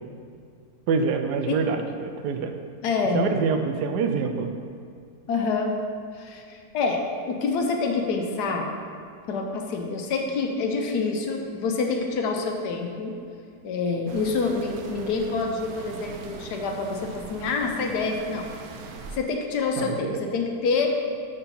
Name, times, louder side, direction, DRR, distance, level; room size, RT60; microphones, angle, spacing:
voice 1, 0.9-2.5 3.1-4.5 19.8-20.2, right 5 dB, 90° right, 6 dB, 1.2 m, -26 dB
voice 2, 2.8-3.2 5.3-5.7 6.1-8.7 9.3-13.1 13.6-18.5 19.1-21.0, left 4 dB, 80° left, 2 dB, 1.3 m, -27 dB
sound 1, 14.1-19.2, right 4 dB, 75° right, 1.0 m, -41 dB
6.8 x 4.4 x 5.3 m, 2.3 s
omnidirectional pair, 1.7 m